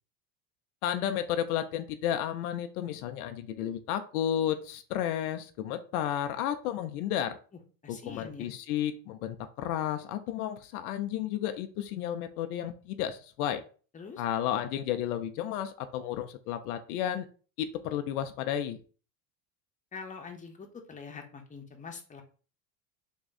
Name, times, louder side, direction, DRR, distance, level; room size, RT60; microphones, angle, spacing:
voice 1, 0.8-7.4 7.9-13.6 14.2-17.3 17.6-18.8, left 10 dB, 85° left, 9 dB, 0.6 m, -32 dB
voice 2, 7.8-8.5 13.9-14.2 19.9-22.2, left 5 dB, 15° left, 3 dB, 0.8 m, -44 dB
3.5 x 2.3 x 4.0 m, 0.38 s
supercardioid pair, 90°, 43 cm